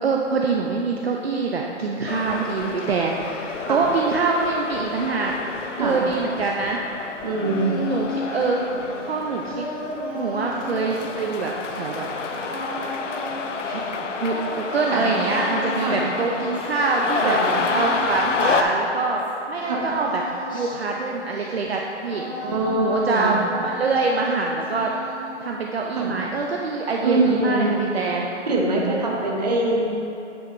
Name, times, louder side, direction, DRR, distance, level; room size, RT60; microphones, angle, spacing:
voice 1, 0.0-5.3 5.8-6.8 7.9-8.6 9.0-9.7 10.1-12.1 13.6-13.8 14.2-17.4 17.7-19.2 19.5-20.2 20.5-22.5 22.8-24.9 25.4-28.3, right 4 dB, 55° right, -1 dB, 0.6 m, -24 dB
sound 1, 2.1-18.6, left 5 dB, 85° left, 0.7 m, -30 dB
sound 2, 7.2-17.0 17.4-19.3 19.5-23.0 23.3-24.3 24.6-25.6, left 1 dB, 20° left, 1.0 m, -35 dB
voice 2, 7.2-7.8 14.9-15.1 15.8-16.0 17.2-17.6 19.6-19.8 22.4-23.4 26.0-26.1 27.0-27.7 28.5-29.9, right 2 dB, 35° right, -2 dB, 1.0 m, -23 dB
8.6 x 7.9 x 3.0 m, 2.8 s
hypercardioid pair, 175°, 36 cm